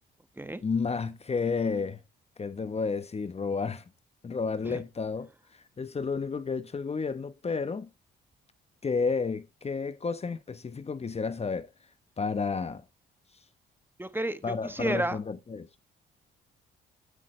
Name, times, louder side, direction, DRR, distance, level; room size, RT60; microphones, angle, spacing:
voice 1, 0.6-2.0 2.4-3.9 4.2-7.9 8.8-11.7 12.2-12.8 14.4-15.7, left 5 dB, 30° left, 1.1 m, -31 dB
voice 2, 14.0-15.2, right 1 dB, 10° right, 1.2 m, -31 dB
12.0 x 10.0 x 3.3 m
cardioid pair, 90°, 20 cm